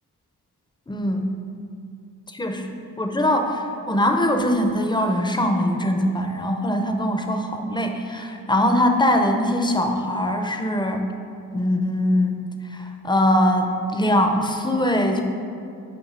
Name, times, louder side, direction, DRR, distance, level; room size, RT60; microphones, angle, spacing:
voice 1, 0.9-1.3 2.3-11.1 11.5-12.4 12.7-15.2, left 1 dB, 10° left, 4 dB, 0.5 m, -22 dB
9.7 x 3.5 x 5.5 m, 2.5 s
wide cardioid pair, 165°, 40 cm